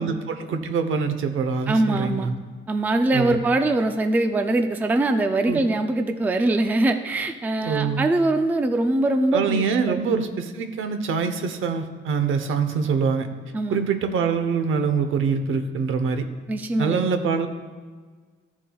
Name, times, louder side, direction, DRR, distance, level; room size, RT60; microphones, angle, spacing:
voice 1, 0.0-2.3 3.1-3.4 5.5-5.6 7.6-8.1 9.3-13.3 13.7-16.2 16.8-17.5, right 5 dB, 75° right, 8 dB, 0.9 m, -24 dB
voice 2, 1.7-2.3 2.7-10.0 13.5-13.8 16.5-17.3, right 2 dB, 10° right, 6 dB, 0.3 m, -22 dB
14.5 x 7.2 x 2.3 m, 1.5 s
cardioid pair, 180°, 21 cm